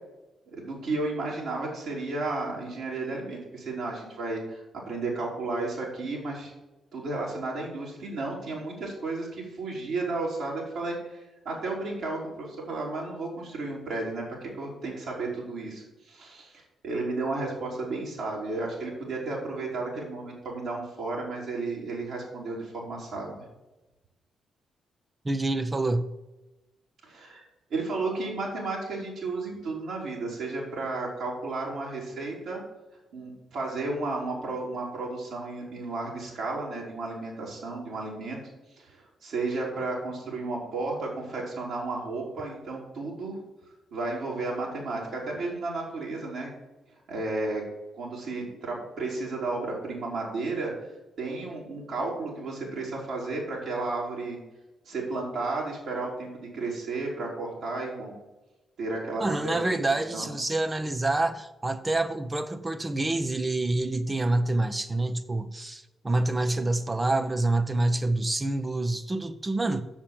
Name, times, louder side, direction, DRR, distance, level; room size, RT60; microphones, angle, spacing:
voice 1, 0.5-4.6 4.8-6.5 6.9-23.3 27.0-27.4 27.7-32.6 33.1-38.4 38.8-43.4 43.9-46.5 47.1-47.6 47.9-50.7 51.2-54.4 54.9-58.1 58.8-60.3, right 3 dB, 65° right, 3.7 m, -33 dB
voice 2, 25.2-26.1 59.2-69.8, right 2 dB, 25° right, 1.0 m, -27 dB
7.2 x 7.1 x 7.4 m
hypercardioid pair, 40°, 0 cm